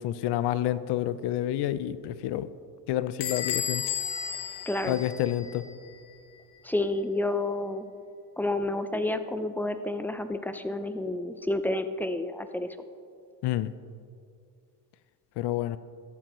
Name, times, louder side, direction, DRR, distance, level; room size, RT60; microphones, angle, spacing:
voice 1, 0.0-2.5 2.9-3.8 4.8-5.7 13.4-13.7 15.4-15.8, left 12 dB, 60° left, 15 dB, 0.5 m, -29 dB
Bell / Squeak, 3.2-5.7, left 8 dB, 85° left, 1.1 m, -33 dB
voice 2, 4.7-5.0 6.6-7.8 8.4-12.7, left 2 dB, 5° left, 10 dB, 0.4 m, -30 dB
14.0 x 9.3 x 3.0 m, 2.4 s
supercardioid pair, 85°, 45 cm